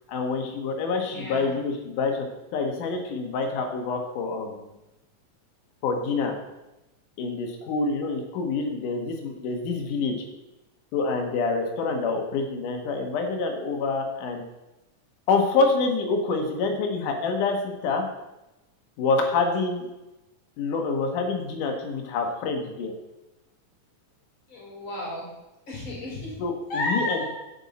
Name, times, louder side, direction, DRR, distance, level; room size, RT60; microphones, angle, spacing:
voice 1, 0.1-2.3 2.5-4.7 5.8-6.3 7.2-10.2 10.9-14.4 15.3-18.1 19.0-19.9 20.6-22.9 26.4-27.3, left 4 dB, 80° left, 3 dB, 2.8 m, -26 dB
voice 2, 1.1-1.5 24.5-25.3 25.7-26.4 26.7-27.3, left 1 dB, 40° left, -5 dB, 4.2 m, -32 dB
9.1 x 8.1 x 4.1 m, 1.0 s
omnidirectional pair, 3.6 m